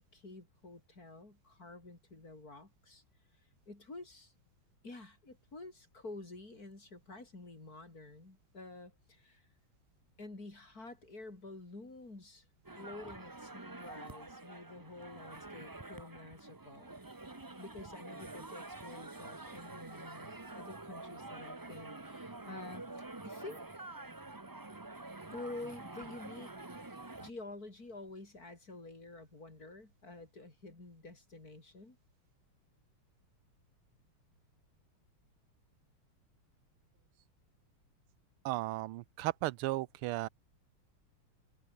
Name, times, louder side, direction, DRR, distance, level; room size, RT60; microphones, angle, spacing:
voice 1, 0.0-3.0 3.7-4.3 4.8-9.5 10.2-12.5 12.8-17.0 17.6-23.6 25.3-26.5 27.2-32.0, left 2 dB, 40° left, 5.6 m, -49 dB
sound 1, 12.6-27.3, right 2 dB, 20° right, 0.5 m, -47 dB
voice 2, 38.4-40.3, right 17 dB, 90° right, 1.5 m, -35 dB
omnidirectional pair, 2.3 m